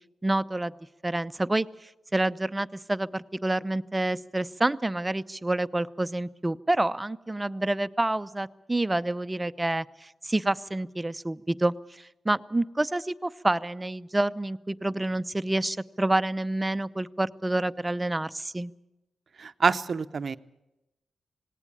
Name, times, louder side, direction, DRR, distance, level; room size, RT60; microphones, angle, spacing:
voice 1, 0.2-0.7 1.0-18.7, right 2 dB, 20° right, 13 dB, 0.7 m, -28 dB
voice 2, 19.4-20.4, right 5 dB, 55° right, 13 dB, 0.7 m, -26 dB
18.5 x 18.0 x 8.7 m, 0.96 s
supercardioid pair, 40°, 0 cm